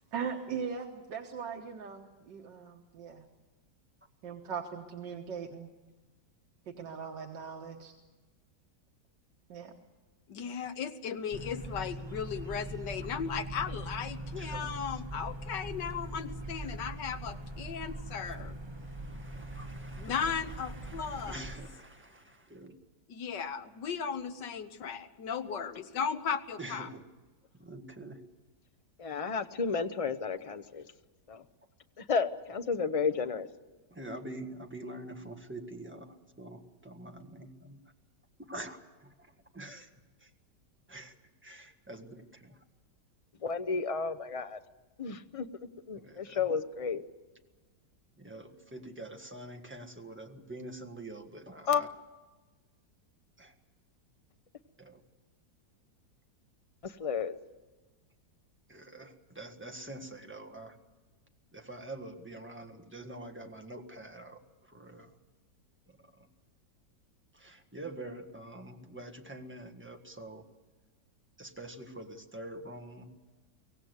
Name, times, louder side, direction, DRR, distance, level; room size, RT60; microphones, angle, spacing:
voice 1, 0.1-3.3 4.2-5.7 6.7-7.9 9.5-9.7, right 6 dB, 90° right, 2 dB, 2.0 m, -39 dB
voice 2, 10.3-18.6 20.0-21.4 23.1-26.9, left 7 dB, 80° left, 10 dB, 1.8 m, -36 dB
sound 1, 11.3-21.6, right 1 dB, 25° right, 0.6 m, -41 dB
voice 3, 14.3-14.7 18.2-18.4 18.7-22.7 25.4-25.5 26.6-27.0 27.6-28.2 33.9-37.8 38.4-39.9 40.2-40.3 40.9-41.1 41.4-42.6 45.9-46.5 48.2-51.9 53.4-53.5 54.8-55.0 58.7-60.8 61.5-65.1 65.9-66.3 67.3-70.4 71.4-73.2, right 1 dB, 5° right, 4 dB, 1.6 m, -46 dB
voice 4, 29.0-30.9 31.3-31.4 32.0-33.5 43.4-44.6 45.0-45.5 45.9-47.0 51.7-51.8 56.8-57.4, left 5 dB, 35° left, 10 dB, 0.6 m, -32 dB
24.0 x 17.0 x 8.1 m, 1.3 s
omnidirectional pair, 1.9 m